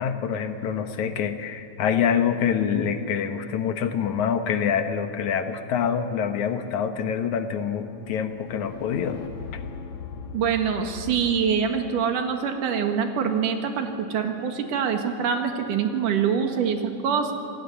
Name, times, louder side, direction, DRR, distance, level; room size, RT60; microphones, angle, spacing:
voice 1, 0.0-9.2 9.5-9.6, left 7 dB, 70° left, 8 dB, 2.5 m, -26 dB
sound 1, 6.3-11.9, left 6 dB, 55° left, 2.0 m, -40 dB
voice 2, 10.3-17.3, right 7 dB, 85° right, 5 dB, 3.3 m, -25 dB
26.5 x 17.5 x 9.8 m, 2.6 s
omnidirectional pair, 3.6 m